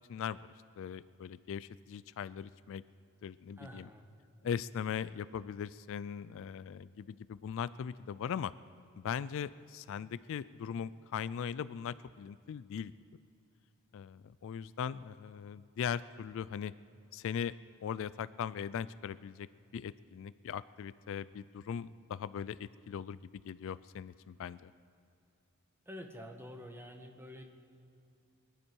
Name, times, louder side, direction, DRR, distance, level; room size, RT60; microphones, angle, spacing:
voice 1, 0.1-2.8 3.2-3.9 4.4-8.5 9.0-12.9 13.9-16.7 17.1-17.5 17.8-19.5 19.7-24.7, left 7 dB, 60° left, 17 dB, 0.3 m, -39 dB
voice 2, 3.6-4.1 25.9-27.4, equal, 10° right, 3 dB, 1.2 m, -48 dB
23.0 x 11.5 x 4.6 m, 2.7 s
head